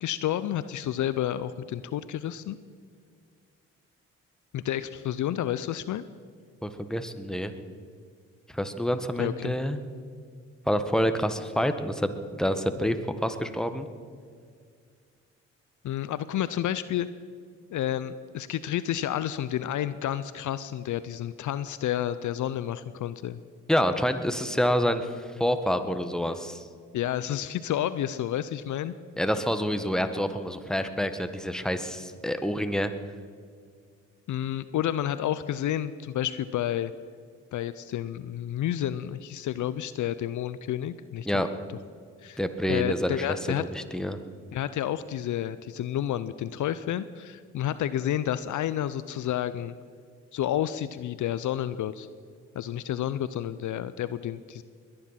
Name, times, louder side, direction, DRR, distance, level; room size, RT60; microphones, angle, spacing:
voice 1, 0.0-2.6 4.5-6.0 9.2-9.5 15.8-17.1 17.7-23.4 26.9-28.9 34.3-36.9 37.5-41.4 42.2-42.4 42.7-43.6 44.5-49.8 50.3-52.1 52.5-54.6, left 11 dB, 60° left, 15 dB, 0.6 m, -30 dB
voice 2, 6.6-7.5 8.5-9.8 10.7-13.0 13.2-13.9 23.7-25.1 25.4-26.6 29.2-32.9 41.2-41.5 42.4-43.2 43.6-44.2, equal, ahead, 8 dB, 1.5 m, -27 dB
21.5 x 10.0 x 5.8 m, 2.1 s
hypercardioid pair, 45°, 34 cm